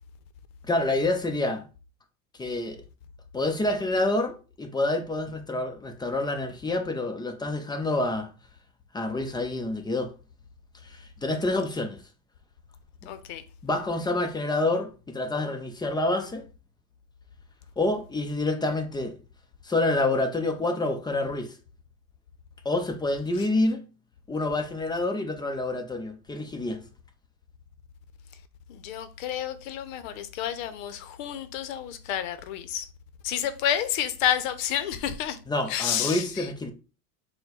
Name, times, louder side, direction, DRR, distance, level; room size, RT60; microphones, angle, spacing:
voice 1, 0.7-1.6 2.4-2.8 3.3-8.3 8.9-10.1 10.8-12.0 13.6-16.4 17.8-19.2 19.6-21.5 22.6-23.8 24.3-26.8 35.5-36.7, left 2 dB, 10° left, 0.5 m, -27 dB
voice 2, 13.1-13.4 28.7-32.9 33.2-35.4 35.7-36.2, left 10 dB, 70° left, 0.7 m, -30 dB
4.2 x 2.2 x 4.1 m
supercardioid pair, 100°, 40 cm